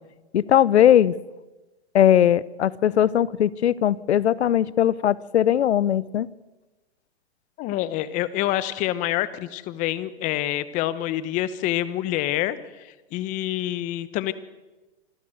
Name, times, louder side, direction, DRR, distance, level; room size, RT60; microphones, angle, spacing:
voice 1, 0.3-1.1 1.9-6.3, left 10 dB, 85° left, 21 dB, 0.9 m, -19 dB
voice 2, 7.6-14.3, left 14 dB, 25° left, 15 dB, 1.0 m, -27 dB
26.0 x 14.0 x 7.9 m, 1.2 s
hypercardioid pair, 155°, 32 cm